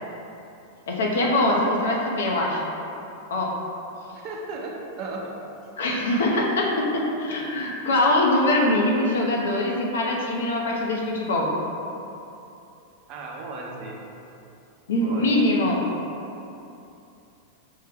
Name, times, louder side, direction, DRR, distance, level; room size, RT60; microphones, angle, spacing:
voice 1, 0.9-2.6 3.3-3.5 5.8-11.5 14.9-15.8, left 1 dB, 90° left, -1 dB, 0.7 m, -23 dB
voice 2, 4.1-5.6 13.1-14.0 15.0-15.5, right 2 dB, 45° right, -1 dB, 0.6 m, -35 dB
5.4 x 2.2 x 3.4 m, 2.9 s
supercardioid pair, 135°, 0 cm